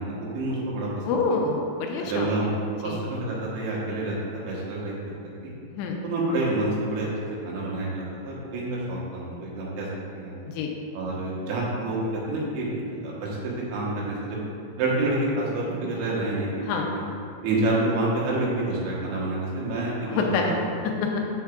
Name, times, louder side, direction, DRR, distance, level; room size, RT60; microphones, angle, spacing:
voice 1, 0.0-1.2 2.0-2.5 2.8-5.0 5.4-5.5 6.0-9.9 10.1-10.4 10.9-14.4 14.8-17.0 17.4-20.6, right 2 dB, 90° right, -5 dB, 3.5 m, -28 dB
voice 2, 1.1-2.3 2.8-3.0 5.7-6.0 10.5-10.7 16.6-16.9 20.1-20.6 20.8-21.2, left 4 dB, 85° left, 1 dB, 2.8 m, -26 dB
7.6 x 7.2 x 2.4 m, 2.6 s
omnidirectional pair, 5.1 m